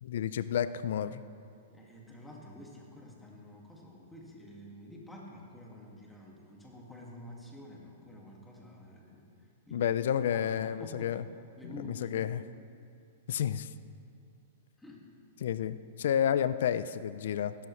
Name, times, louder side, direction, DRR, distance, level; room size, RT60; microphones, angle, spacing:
voice 1, 0.0-1.2 9.7-11.2 11.8-12.4 13.3-13.7 15.4-17.6, left 9 dB, 70° left, 15 dB, 0.5 m, -30 dB
voice 2, 1.7-9.9 10.3-11.2 11.6-12.2 14.8-15.1, left 1 dB, 5° left, -2 dB, 2.1 m, -49 dB
16.0 x 13.0 x 3.2 m, 2.4 s
hypercardioid pair, 135°, 0 cm